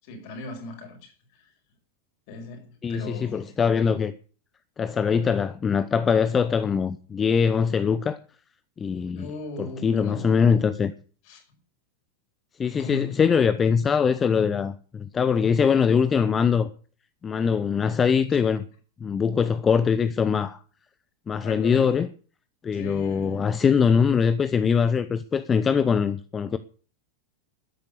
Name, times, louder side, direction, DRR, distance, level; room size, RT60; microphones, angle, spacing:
voice 1, 0.0-1.5 2.3-3.5 9.1-10.4 11.2-11.4 12.6-13.2 18.4-18.5 21.4-22.1 22.7-23.6, left 1 dB, 45° left, 5.8 m, -38 dB
voice 2, 2.8-4.1 4.8-8.2 8.8-9.3 9.6-10.9 12.6-16.7 17.2-18.6 19.0-20.6 21.3-22.1 22.6-26.6, left 6 dB, 20° left, 0.9 m, -22 dB
13.0 x 10.5 x 8.4 m
figure-of-eight pair, 90°, 0 cm